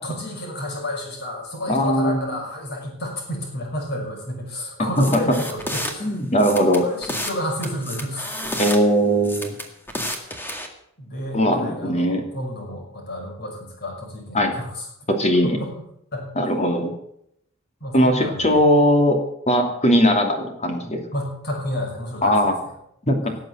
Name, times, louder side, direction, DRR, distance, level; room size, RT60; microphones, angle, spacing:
voice 1, 0.0-6.2 6.8-8.6 11.0-14.9 15.4-15.7 16.1-16.3 17.8-18.6 21.1-22.7 23.2-23.4, left 1 dB, 50° left, 0 dB, 5.6 m, -31 dB
voice 2, 1.7-2.2 6.0-6.8 8.6-9.5 11.3-12.2 14.3-14.5 15.1-15.6 16.4-16.9 17.9-19.2 19.5-21.0 22.2-22.5 23.1-23.2, equal, 35° left, 4 dB, 2.6 m, -19 dB
sound 1, 5.0-5.9 6.4-7.4 7.6-8.8 9.2-10.7, left 1 dB, 10° left, 1.9 m, -30 dB
17.5 x 7.7 x 7.8 m, 0.73 s
head